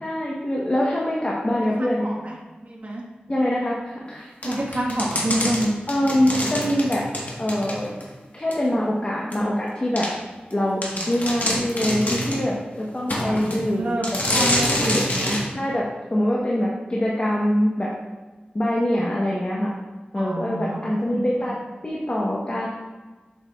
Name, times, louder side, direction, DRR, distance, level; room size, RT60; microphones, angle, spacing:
voice 1, 0.0-2.1 3.3-4.6 5.9-7.1 7.4-7.9 8.3-10.1 10.5-13.9 14.4-15.0 15.5-15.9 16.1-17.9 18.5-19.7 20.1-21.6 21.8-22.7, left 1 dB, 35° left, -5 dB, 1.1 m, -24 dB
voice 2, 1.8-2.3 2.6-3.0 4.4-5.8 10.8-11.2 13.2-15.4 20.1-21.5, right 1 dB, 45° right, -2 dB, 1.5 m, -28 dB
sound 1, 4.4-8.1 8.5-8.6 9.3-9.4 10.0-10.1 10.5-10.6 10.8-12.5 13.1-13.6 14.0-15.5, left 1 dB, 50° left, 1.4 m, -26 dB
6.9 x 6.5 x 2.4 m, 1.2 s
wide cardioid pair, 60°, 3 cm